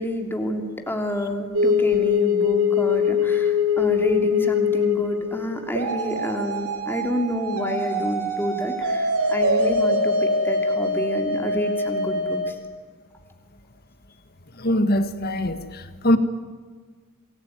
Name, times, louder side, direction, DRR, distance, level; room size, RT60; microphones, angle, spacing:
voice 1, 0.0-12.6, equal, 10° left, 3.1 m, -29 dB
sound 1, 1.5-12.5, left 3 dB, 80° right, 4.5 m, -23 dB
voice 2, 14.6-16.2, equal, 45° left, 1.8 m, -22 dB
28.0 x 20.5 x 9.5 m
head